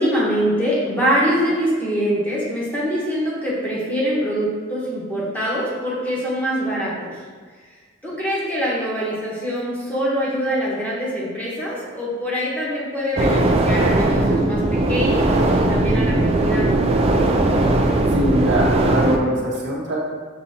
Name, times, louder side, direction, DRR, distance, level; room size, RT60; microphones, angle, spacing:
voice 1, 0.0-7.2 8.0-16.7, equal, 10° left, -7 dB, 0.9 m, -24 dB
sound 1, 13.2-19.2, right 2 dB, 30° right, 0.3 m, -18 dB
voice 2, 18.1-20.0, equal, 55° right, -4 dB, 0.8 m, -22 dB
6.2 x 2.7 x 2.8 m, 1.5 s
head